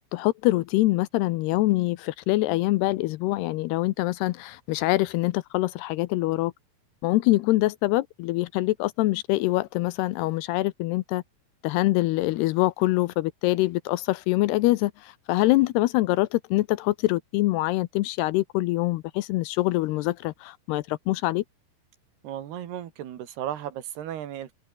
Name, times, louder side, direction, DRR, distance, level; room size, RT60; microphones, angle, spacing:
voice 1, 0.1-6.5 7.0-11.2 11.6-21.4, left 18 dB, 80° left, 2.6 m, -24 dB
voice 2, 22.2-24.5, right 11 dB, 70° right, 4.0 m, -35 dB
omnidirectional pair, 4.9 m